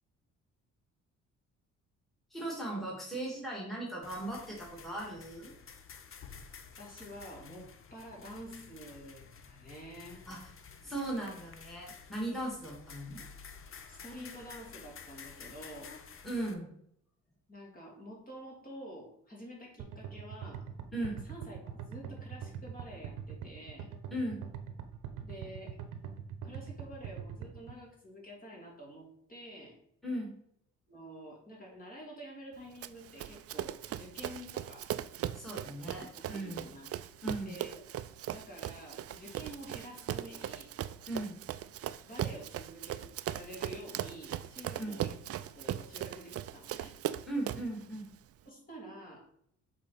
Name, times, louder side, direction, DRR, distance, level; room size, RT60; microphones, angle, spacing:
voice 1, 2.3-5.5 10.3-10.4 10.8-13.2 16.2-16.7 20.9-21.2 24.1-24.4 30.0-30.3 35.3-36.7 37.2-37.6 41.1-41.4 44.7-45.0 47.3-48.1, right 1 dB, ahead, -3 dB, 2.4 m, -38 dB
sound 1, 4.0-16.5, left 6 dB, 45° left, 0.8 m, -51 dB
voice 2, 6.8-10.3 13.2-13.3 13.9-15.9 17.5-20.7 21.2-23.9 25.2-25.8 26.4-29.8 30.9-34.9 35.8-36.9 37.4-37.8 38.2-40.7 42.0-45.1 45.5-47.0 48.4-49.3, equal, 30° left, -3 dB, 2.9 m, -49 dB
sound 2, 19.8-27.8, right 8 dB, 85° right, 0.9 m, -43 dB
Run, 32.8-47.8, right 11 dB, 55° right, 0.4 m, -39 dB
7.3 x 4.1 x 4.1 m, 0.70 s
cardioid pair, 90°, 30 cm